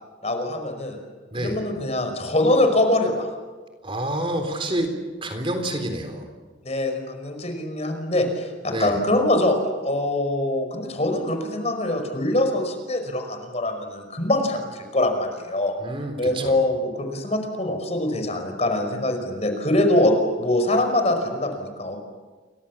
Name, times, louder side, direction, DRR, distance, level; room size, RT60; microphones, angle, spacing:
voice 1, 0.2-1.0 1.4-3.3 6.6-9.6 9.8-15.7 16.2-22.0, left 1 dB, 35° left, 5 dB, 5.3 m, -23 dB
voice 2, 1.3-1.6 3.8-4.9 5.2-6.3 8.7-9.0 15.8-16.6, right 1 dB, 30° right, 5 dB, 3.8 m, -28 dB
29.5 x 25.0 x 7.4 m, 1.3 s
head